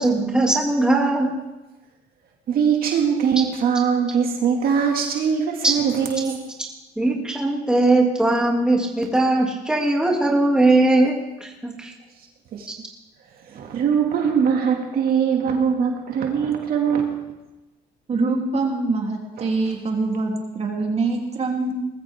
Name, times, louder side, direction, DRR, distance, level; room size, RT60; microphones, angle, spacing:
voice 1, 0.0-1.3 5.6-5.7 7.0-11.9, right 2 dB, 5° right, -1 dB, 2.7 m, -19 dB
voice 2, 2.5-6.5 12.5-12.7 13.5-17.3 19.4-19.5, right 7 dB, 60° right, 1 dB, 2.3 m, -22 dB
voice 3, 18.1-21.7, right 3 dB, 40° right, 1 dB, 3.3 m, -24 dB
20.0 x 14.0 x 3.6 m, 1.0 s
cardioid pair, 110°, 17 cm